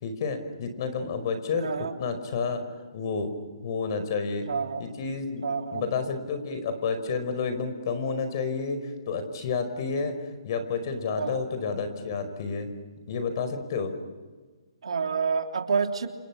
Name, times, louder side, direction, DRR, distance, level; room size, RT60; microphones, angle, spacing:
voice 1, 0.0-2.6 2.9-3.3 3.6-4.5 4.8-5.5 5.7-10.2 10.4-12.7 13.1-13.9, left 5 dB, 45° left, 9 dB, 5.1 m, -30 dB
voice 2, 1.6-1.9 4.5-4.9 5.4-5.9 11.2-11.5 14.8-16.1, right 5 dB, 75° right, 4 dB, 3.3 m, -28 dB
30.0 x 29.0 x 6.1 m, 1.4 s
hypercardioid pair, 155°, 3 cm